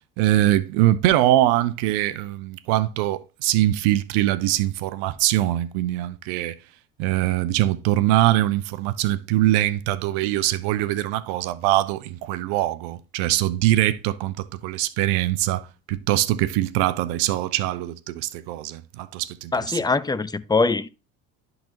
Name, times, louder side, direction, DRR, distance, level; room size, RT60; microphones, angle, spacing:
voice 1, 0.2-6.6 7.0-19.8, right 14 dB, 75° right, 0.7 m, -22 dB
voice 2, 19.5-20.9, left 3 dB, 10° left, 0.5 m, -22 dB
12.0 x 4.0 x 2.9 m
hypercardioid pair, 70°, 41 cm